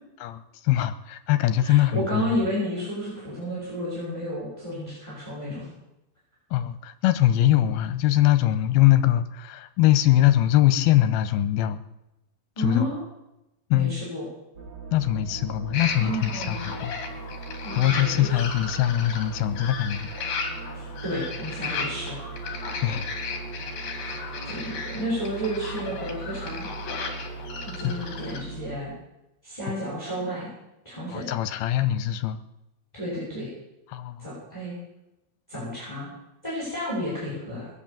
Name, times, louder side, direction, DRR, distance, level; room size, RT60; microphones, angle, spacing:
voice 1, 0.2-2.4 6.5-11.8 12.6-12.9 13.7-14.0 14.9-16.9 17.8-20.1 22.8-23.1 27.8-27.9 29.7-29.8 31.1-32.4 33.9-34.3, left 13 dB, 80° left, 11 dB, 2.6 m, -22 dB
voice 2, 1.6-5.7 12.6-13.0 13.7-14.2 16.0-16.7 17.6-18.3 20.7-22.2 23.9-26.7 27.6-28.9 29.4-30.5 30.8-31.3 32.9-33.5 34.2-34.7 35.5-36.1 36.4-37.7, equal, 10° left, -8 dB, 6.4 m, -31 dB
sound 1, 14.5-28.8, right 4 dB, 35° right, 1.8 m, -39 dB
sound 2, 15.7-28.4, left 5 dB, 55° left, 2.9 m, -35 dB
21.0 x 8.3 x 7.4 m, 0.92 s
omnidirectional pair, 4.5 m